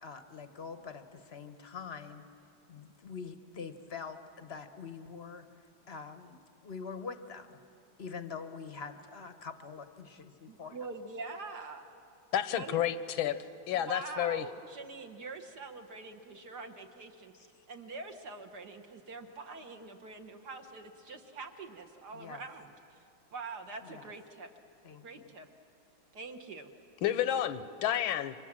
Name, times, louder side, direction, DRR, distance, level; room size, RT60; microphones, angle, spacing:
voice 1, 0.0-2.2 2.7-5.5 5.9-7.6 8.0-10.8 17.3-17.6 22.1-22.4 23.8-24.1 24.8-25.3, left 5 dB, 40° left, 9 dB, 0.9 m, -45 dB
voice 2, 10.5-11.8 12.5-12.8 13.7-22.7 23.3-24.5 25.0-25.5 26.1-26.7, right 3 dB, 55° right, 5 dB, 1.7 m, -44 dB
voice 3, 12.3-13.4 13.7-14.5 27.0-28.3, left 11 dB, 80° left, 13 dB, 1.6 m, -30 dB
29.5 x 24.5 x 7.4 m, 2.6 s
omnidirectional pair, 2.2 m